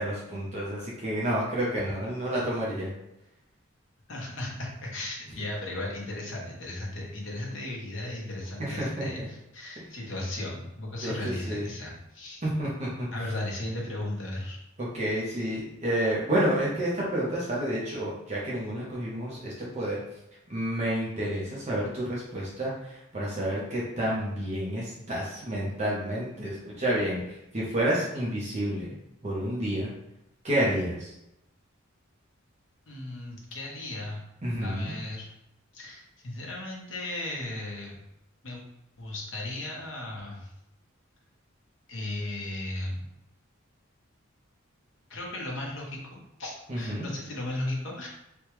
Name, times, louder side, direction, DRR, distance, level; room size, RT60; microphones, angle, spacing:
voice 1, 0.0-2.9 8.6-9.3 11.0-11.7 12.4-13.1 14.8-20.0 20.5-29.0 29.2-29.9 30.4-31.1 34.4-34.9 46.7-47.1, right 1 dB, 30° right, -6 dB, 0.7 m, -30 dB
voice 2, 4.1-12.4 13.1-14.6 32.9-34.2 34.6-35.3 35.7-38.0 38.4-38.6 39.0-40.5 41.9-43.1 45.1-48.1, left 1 dB, 60° left, -2 dB, 0.9 m, -36 dB
3.4 x 2.2 x 3.0 m, 0.85 s
head